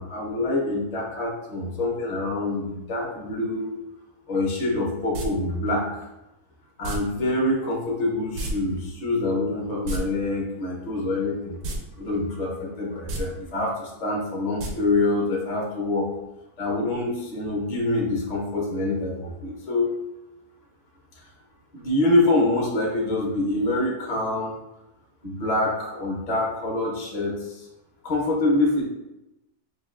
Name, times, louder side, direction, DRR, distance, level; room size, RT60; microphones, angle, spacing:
voice 1, 0.0-3.8 4.3-5.9 6.8-11.6 12.0-16.1 16.6-19.9 21.7-24.5 25.2-27.6 28.0-28.8, left 2 dB, 35° left, -2 dB, 0.7 m, -25 dB
sound 1, 5.1-5.3 6.8-7.0 8.3-8.5 8.8-8.9 9.7-10.0 11.6-11.8 12.1-12.2 13.0-13.2 14.6-14.7 15.0-15.1, right 2 dB, 80° right, 1.2 m, -30 dB
5.1 x 2.6 x 2.4 m, 0.93 s
omnidirectional pair, 1.6 m